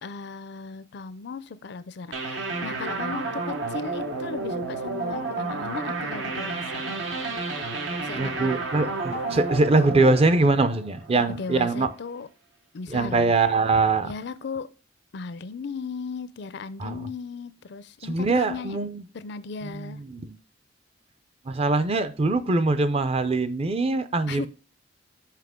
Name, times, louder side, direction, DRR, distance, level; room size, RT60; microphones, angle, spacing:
voice 1, 0.0-6.9 8.0-8.6 11.1-12.3 12.7-13.3 14.0-14.7 15.1-18.9 19.1-20.0 24.3-24.5, left 5 dB, 60° left, 0.4 m, -36 dB
sound 1, 2.1-11.5, right 3 dB, 85° right, 1.1 m, -31 dB
voice 2, 8.2-11.9 12.9-14.1 16.8-17.1 18.1-19.0 19.6-20.4 21.5-24.5, right 3 dB, 30° right, 0.5 m, -23 dB
5.8 x 5.5 x 3.6 m
head